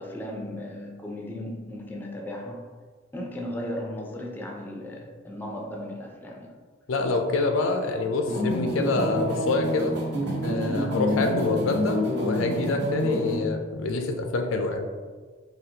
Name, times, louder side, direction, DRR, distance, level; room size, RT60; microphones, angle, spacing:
voice 1, 0.0-2.6 3.1-6.5 7.9-8.0 8.3-8.4, left 1 dB, 10° left, 0 dB, 0.4 m, -36 dB
voice 2, 6.9-9.9 10.4-14.9, left 3 dB, 80° left, 4 dB, 0.4 m, -26 dB
sound 1, 8.2-13.4, equal, 60° right, 0.8 m, -28 dB
4.1 x 2.7 x 2.8 m, 1.5 s
head